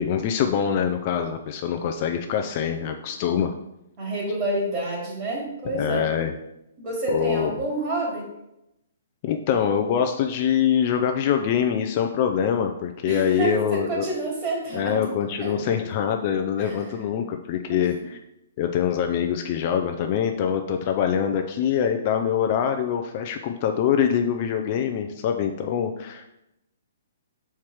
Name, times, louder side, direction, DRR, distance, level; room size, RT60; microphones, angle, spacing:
voice 1, 0.0-3.5 5.7-6.3 7.1-7.5 9.2-14.1 14.7-18.2 18.6-26.4, left 8 dB, 35° left, 5 dB, 0.5 m, -24 dB
voice 2, 4.0-6.0 6.8-8.3 13.0-15.0 15.4-15.7 16.6-16.7 17.7-17.8, right 2 dB, 25° right, -4 dB, 2.6 m, -28 dB
5.7 x 4.5 x 4.8 m, 0.86 s
hypercardioid pair, 160°, 0 cm